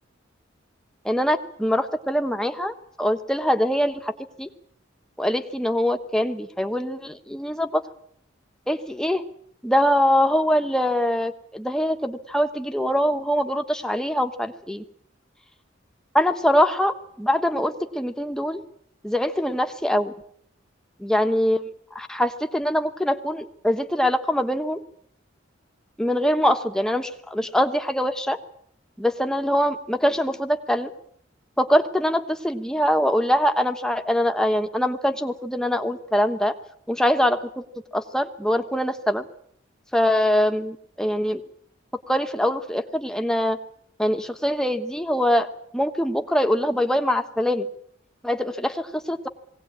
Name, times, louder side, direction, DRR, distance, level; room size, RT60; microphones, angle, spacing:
voice 1, 1.0-4.5 5.2-7.8 8.7-9.2 9.6-14.8 16.1-18.6 19.0-20.1 21.0-21.6 21.9-24.8 26.0-28.4 29.0-30.9 31.6-36.5 36.9-37.6 37.9-39.2 39.9-41.4 42.1-43.6 44.0-45.5 45.7-47.7 48.2-49.3, equal, 5° left, 6 dB, 1.2 m, -23 dB
20.5 x 18.0 x 8.7 m, 0.67 s
head